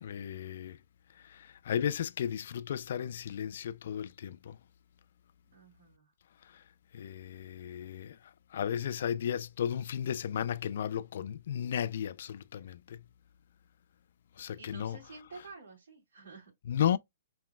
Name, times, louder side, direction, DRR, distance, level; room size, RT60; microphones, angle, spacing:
voice 1, 0.0-0.8 1.2-4.6 6.4-6.6 6.9-8.2 8.5-13.0 14.4-15.0 16.7-17.0, left 9 dB, 60° left, 0.3 m, -34 dB
voice 2, 5.5-6.1 12.6-12.7 14.6-16.5, right 4 dB, 85° right, 2.6 m, -51 dB
4.3 x 4.0 x 2.2 m
hypercardioid pair, 150°, 0 cm